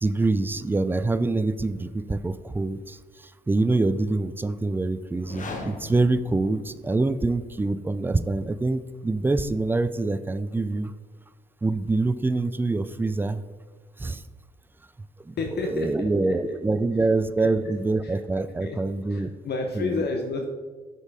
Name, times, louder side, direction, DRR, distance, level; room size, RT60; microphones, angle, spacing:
voice 1, 0.0-3.0 3.5-10.9 11.6-13.4 14.0-14.2 15.3-15.4 15.7-19.3 19.8-20.0, right 3 dB, 10° right, 14 dB, 0.3 m, -25 dB
sound 1, 5.1-7.2, left 2 dB, 40° left, 1.2 m, -39 dB
voice 2, 15.4-16.6 17.0-17.1 17.4-17.7 18.0-18.2 18.6-18.8 19.1-20.4, left 3 dB, 55° left, 3 dB, 0.8 m, -31 dB
6.4 x 5.4 x 4.8 m, 1.5 s
cardioid pair, 90°, 20 cm